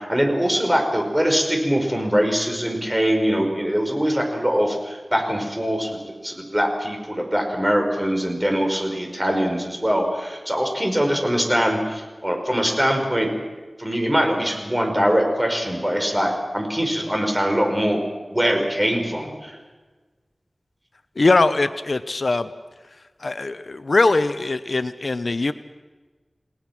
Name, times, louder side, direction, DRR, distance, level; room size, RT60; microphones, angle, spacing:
voice 1, 0.0-6.0 6.2-13.3 13.8-18.0 18.3-19.6, equal, 15° right, 2 dB, 5.2 m, -22 dB
voice 2, 21.2-22.5 23.2-25.5, left 3 dB, 65° left, 12 dB, 0.8 m, -21 dB
29.0 x 19.0 x 6.1 m, 1.3 s
wide cardioid pair, 70°, 0 cm